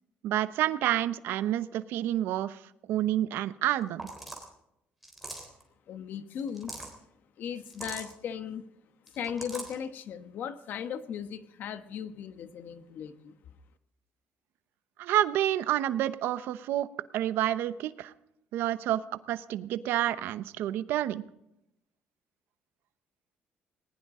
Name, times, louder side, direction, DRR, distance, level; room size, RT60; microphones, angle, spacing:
voice 1, 0.2-2.6 2.9-4.0 15.0-16.9 17.1-18.1 18.5-21.2, right 12 dB, 90° right, 13 dB, 0.9 m, -29 dB
sound 1, 3.7-3.8 4.0-4.5 5.0-5.6 6.4-6.9 7.7-8.1 9.1-9.7, right 1 dB, ahead, 3.6 m, -41 dB
voice 2, 5.9-6.8 7.4-8.6 9.1-13.4, left 8 dB, 60° left, 11 dB, 1.1 m, -37 dB
20.0 x 19.5 x 3.8 m, 0.81 s
cardioid pair, 160°, 4 cm